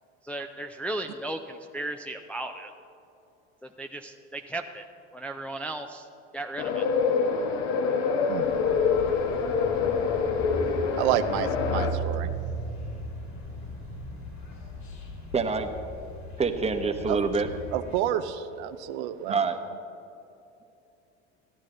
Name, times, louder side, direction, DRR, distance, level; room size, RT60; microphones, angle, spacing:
voice 1, 0.2-2.7 3.6-4.8 5.1-6.1 6.3-6.9, right 2 dB, 5° left, 4 dB, 0.4 m, -35 dB
sound 1, 6.6-11.9, left 5 dB, 70° left, 1.1 m, -26 dB
sound 2, 8.4-18.0, right 1 dB, 55° left, 2.4 m, -37 dB
voice 2, 11.0-12.3 17.1-17.2 17.7-19.4, right 11 dB, 70° right, 10 dB, 0.6 m, -29 dB
voice 3, 15.3-15.7 16.4-17.5 19.3-19.6, right 4 dB, 20° right, 6 dB, 0.9 m, -26 dB
15.0 x 10.5 x 3.8 m, 2.7 s
hypercardioid pair, 90°, 35 cm